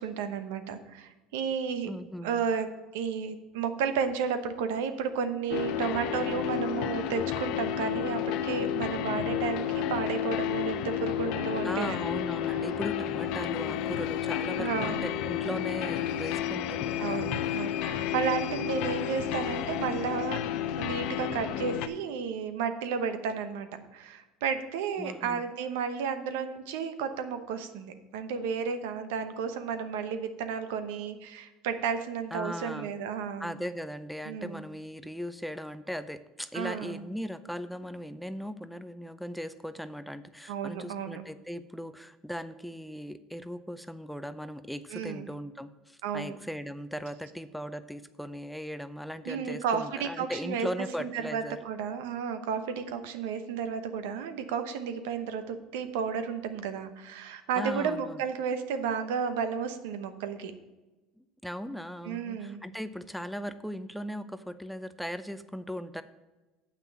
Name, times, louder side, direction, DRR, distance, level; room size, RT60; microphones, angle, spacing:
voice 1, 0.0-1.9 2.2-12.0 14.6-15.0 17.0-20.4 20.8-33.5 34.3-34.6 36.5-37.0 40.5-41.2 44.9-45.3 46.0-46.4 49.3-50.7 51.0-60.5 62.0-62.6, right 6 dB, 85° right, 9 dB, 0.9 m, -32 dB
voice 2, 1.8-2.4 11.6-17.6 25.0-25.4 32.3-32.9 33.4-51.6 57.6-58.2 61.2-66.0, equal, ahead, 12 dB, 0.5 m, -38 dB
sound 1, 5.5-21.9, left 10 dB, 70° left, 0.6 m, -31 dB
7.5 x 5.8 x 7.0 m, 1.1 s
supercardioid pair, 110°, 0 cm